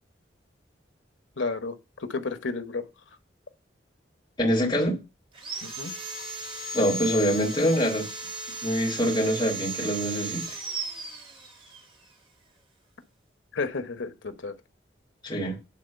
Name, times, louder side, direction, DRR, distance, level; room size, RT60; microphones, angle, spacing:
voice 1, 1.4-2.8 5.6-5.9 13.5-14.5, left 4 dB, 90° left, 1.1 m, -32 dB
voice 2, 4.4-5.0 6.7-8.1 8.6-10.4 15.2-15.6, equal, 25° left, 3.2 m, -25 dB
Sawing, 5.3-11.8, right 2 dB, 25° right, 1.3 m, -36 dB
9.5 x 4.0 x 6.6 m
head